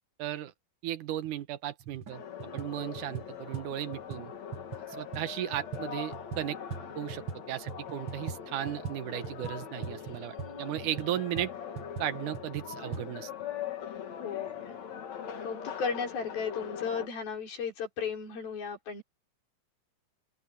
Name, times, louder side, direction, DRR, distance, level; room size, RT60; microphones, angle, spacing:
voice 1, 0.2-0.5 0.8-2.2 2.5-4.3 5.0-6.6 7.0-11.5 12.0-13.3, right 12 dB, 70° right, 2.4 m, -35 dB
sound 1, 1.3-1.4 1.8-2.1 2.4-7.4 7.7-13.1, right 7 dB, 45° right, 2.0 m, -41 dB
sound 2, 2.1-17.1, left 8 dB, 55° left, 3.1 m, -41 dB
voice 2, 14.1-14.6 15.4-19.0, left 6 dB, 85° left, 7.3 m, -35 dB
open air
omnidirectional pair, 4.1 m